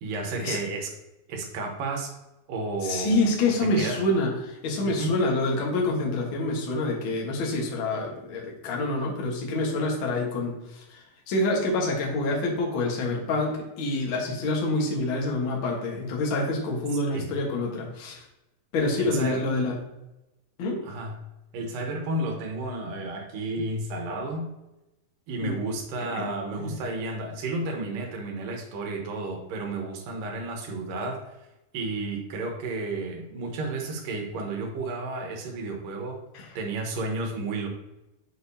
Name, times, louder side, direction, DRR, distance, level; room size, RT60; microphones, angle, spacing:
voice 1, 0.0-0.9 1.3-2.1 2.5-3.3 3.6-4.0 4.8-5.1 17.1-17.4 19.0-19.4 20.8-21.2 21.5-24.5 25.3-31.2 31.7-36.2 36.6-37.7, right 2 dB, 75° right, 1 dB, 2.8 m, -32 dB
voice 2, 2.8-18.2 18.7-19.8 20.6-20.8 25.4-25.6 26.2-26.3 26.6-26.7 36.3-36.5, left 2 dB, 50° left, -2 dB, 1.6 m, -27 dB
6.3 x 6.2 x 2.8 m, 0.94 s
omnidirectional pair, 4.0 m